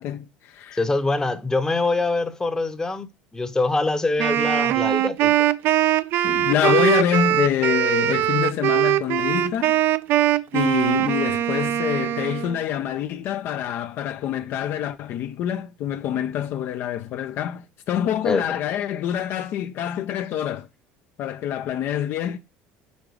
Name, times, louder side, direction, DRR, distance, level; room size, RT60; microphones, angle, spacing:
voice 1, 0.0-0.8 6.2-9.8 10.5-20.7 21.2-22.4, left 10 dB, 55° left, 0.4 m, -26 dB
voice 2, 0.7-3.1 3.3-5.3 18.2-18.5, left 3 dB, 15° left, 0.7 m, -24 dB
Wind instrument woodwind instrument, 4.2-12.6, right 13 dB, 55° right, 0.4 m, -21 dB
5.3 x 3.8 x 4.7 m
supercardioid pair, 100°, 4 cm